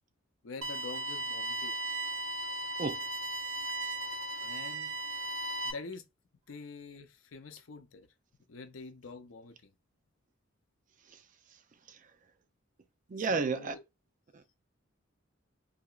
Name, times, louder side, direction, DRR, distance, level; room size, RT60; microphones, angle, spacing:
voice 1, 0.4-1.7 4.4-4.9 5.6-6.1 6.5-8.1 8.5-9.7 13.3-13.8, left 4 dB, 80° left, 0.6 m, -46 dB
sound 1, 0.6-5.7, right 1 dB, 85° right, 0.7 m, -36 dB
voice 2, 13.1-13.8 14.3-14.5, right 4 dB, 40° right, 0.4 m, -32 dB
4.1 x 2.9 x 2.3 m
head